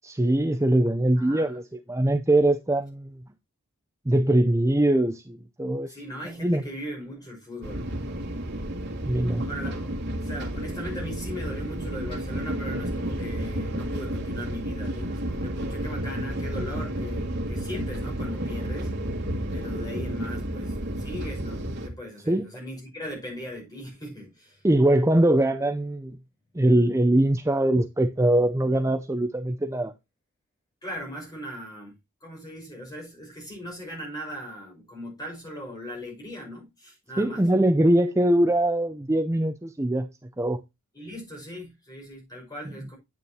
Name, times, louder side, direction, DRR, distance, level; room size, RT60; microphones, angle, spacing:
voice 1, 0.0-1.6 1.9-3.2 4.1-6.0 6.4-6.6 9.0-9.4 22.3-22.5 24.6-26.2 26.5-29.9 37.2-40.1 40.4-40.6, right 1 dB, 15° right, 0.5 m, -22 dB
voice 2, 1.2-1.6 5.8-7.9 9.4-9.9 10.2-18.9 19.5-24.6 30.8-31.9 32.2-37.4 40.9-43.0, equal, 15° left, 5.7 m, -39 dB
sound 1, 7.6-21.9, right 1 dB, 50° right, 2.4 m, -31 dB
9.6 x 8.9 x 2.8 m
head